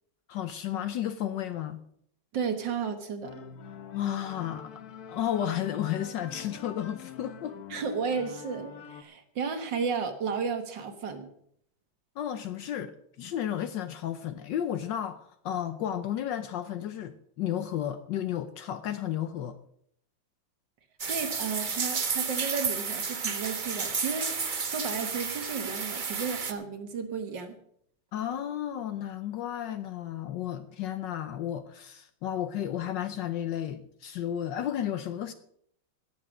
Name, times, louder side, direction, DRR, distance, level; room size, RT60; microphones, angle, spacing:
voice 1, 0.3-1.8 3.9-4.7 5.1-7.6 12.2-19.6 28.1-35.3, left 10 dB, 75° left, 1.3 m, -33 dB
voice 2, 2.3-3.4 7.7-11.3 21.1-24.3 24.6-27.6, right 5 dB, 70° right, 2.1 m, -33 dB
sound 1, 3.2-9.0, left 7 dB, 55° left, 1.4 m, -45 dB
sound 2, 21.0-26.5, right 5 dB, 40° right, 0.7 m, -32 dB
17.5 x 7.2 x 6.1 m
omnidirectional pair, 2.1 m